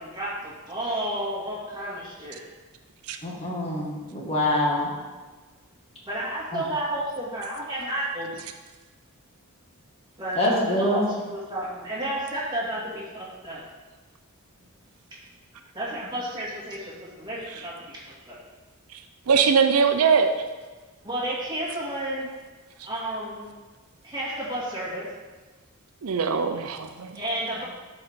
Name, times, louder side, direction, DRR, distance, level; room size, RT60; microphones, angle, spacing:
voice 1, 0.0-2.4 6.1-8.4 10.2-13.6 15.7-18.4 21.0-22.3 22.8-23.5 24.0-25.1 27.1-27.6, right 1 dB, 20° right, -6 dB, 2.3 m, -32 dB
voice 2, 3.2-4.9 6.5-6.6 10.4-11.1, left 1 dB, 30° left, -4 dB, 1.9 m, -25 dB
voice 3, 19.3-20.3 26.0-27.1, right 6 dB, 85° right, 7 dB, 0.6 m, -21 dB
12.5 x 4.8 x 3.7 m, 1.3 s
head